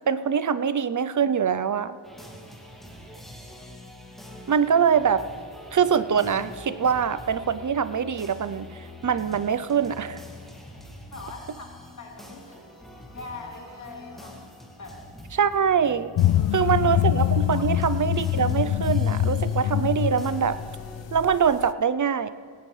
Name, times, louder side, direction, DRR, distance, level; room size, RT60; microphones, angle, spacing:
voice 1, 0.1-2.0 4.5-5.2 5.7-10.2 15.4-16.1 16.5-20.6 21.1-22.3, right 7 dB, 40° right, 14 dB, 0.5 m, -23 dB
sound 1, 2.0-21.1, left 1 dB, ahead, 2.2 m, -45 dB
voice 2, 11.1-11.6 12.0-12.7 13.1-15.0 16.3-16.7 17.5-17.7, left 3 dB, 35° left, -1 dB, 2.7 m, -42 dB
sound 2, 16.2-21.7, left 12 dB, 65° left, 0.5 m, -24 dB
18.0 x 17.5 x 3.3 m, 2.2 s
wide cardioid pair, 135°, 49 cm